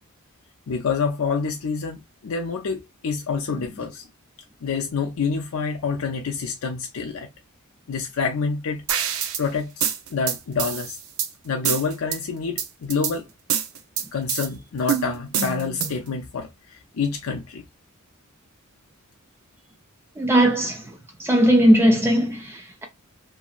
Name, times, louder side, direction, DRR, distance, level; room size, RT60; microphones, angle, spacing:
voice 1, 0.7-4.1 4.6-7.3 7.9-8.8 9.4-11.0 11.4-13.3 14.1-17.6, left 5 dB, 80° left, 0.5 m, -27 dB
sound 1, 8.9-9.4 9.8-11.3 11.6-12.2 12.6-13.1 13.5-14.5 14.9-16.1, right 8 dB, 90° right, 0.6 m, -26 dB
voice 2, 20.2-20.8 21.2-22.8, equal, 10° right, 0.4 m, -18 dB
2.9 x 2.6 x 2.3 m
head